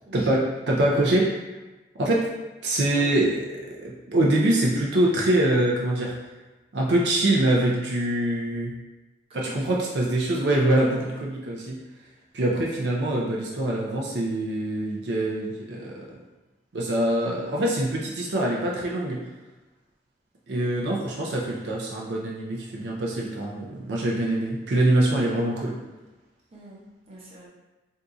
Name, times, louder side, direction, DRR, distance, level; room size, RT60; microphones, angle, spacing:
voice 1, 0.1-1.4 2.0-2.3 2.6-3.5 3.8-6.1 6.7-8.7 9.3-11.8 12.3-16.2 16.7-19.2 20.5-25.8, right 1 dB, 75° right, -3 dB, 0.5 m, -24 dB
voice 2, 2.9-3.2 9.3-9.7 11.0-11.2 26.5-27.5, right 1 dB, 35° right, -5 dB, 0.7 m, -45 dB
2.7 x 2.3 x 3.8 m, 1.1 s
head